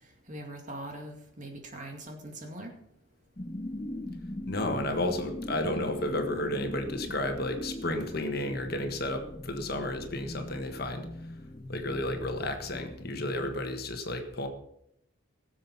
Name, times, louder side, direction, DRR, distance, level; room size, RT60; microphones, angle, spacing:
voice 1, 0.3-2.7, right 1 dB, 35° right, 3 dB, 2.2 m, -42 dB
sound 1, 3.4-13.5, left 1 dB, 25° left, 0.6 m, -41 dB
voice 2, 4.5-11.3 11.7-14.5, left 1 dB, 50° left, 5 dB, 1.6 m, -32 dB
17.5 x 7.5 x 5.8 m, 0.76 s
head